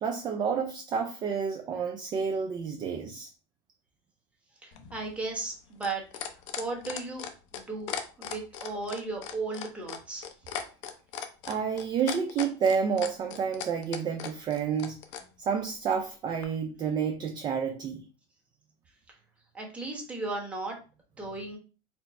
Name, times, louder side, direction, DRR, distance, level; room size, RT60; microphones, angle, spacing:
voice 1, 0.0-3.3 11.5-15.0 15.4-18.0, right 6 dB, 30° right, 0.4 m, -29 dB
voice 2, 4.6-6.0 6.6-7.9 8.2-10.3 19.5-20.8 21.2-21.6, right 3 dB, 10° right, 1.0 m, -35 dB
sound 1, 4.7-15.2 16.4-16.5, left 8 dB, 85° left, 0.7 m, -37 dB
4.3 x 2.0 x 4.3 m
cardioid pair, 150°, 15 cm